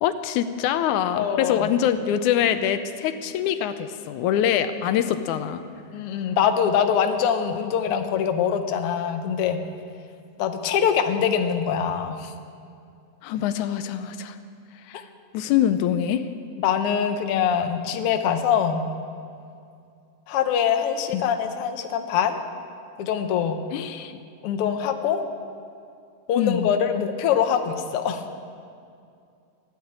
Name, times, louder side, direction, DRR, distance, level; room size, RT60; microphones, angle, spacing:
voice 1, 0.0-5.6 13.2-14.4 14.9-15.0 15.3-16.2 21.1-21.2 23.7-24.2 26.4-26.7, left 10 dB, 85° left, 10 dB, 2.1 m, -24 dB
voice 2, 1.1-1.7 5.9-9.6 10.4-12.3 16.6-18.8 20.3-22.4 23.0-23.6 24.4-25.2 26.3-28.4, left 8 dB, 65° left, 6 dB, 1.6 m, -23 dB
15.5 x 10.5 x 8.7 m, 2.4 s
omnidirectional pair, 3.4 m